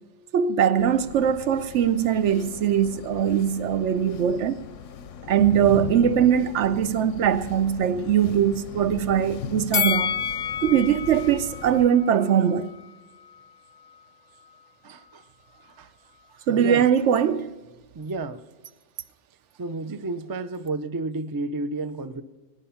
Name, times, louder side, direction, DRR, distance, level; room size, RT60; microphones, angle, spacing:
voice 1, 0.3-4.6 5.3-10.2 10.6-12.7 16.5-17.5, right 9 dB, 75° right, 1.0 m, -21 dB
sound 1, 0.8-11.9, left 8 dB, 80° left, 1.0 m, -39 dB
Bell, 9.7-12.9 13.3-13.4, left 9 dB, 45° left, 0.6 m, -29 dB
voice 2, 14.8-15.3 15.6-15.9 16.5-16.9 17.9-18.4 19.6-22.2, right 3 dB, 30° right, 0.4 m, -31 dB
22.0 x 9.8 x 5.7 m
omnidirectional pair, 1.3 m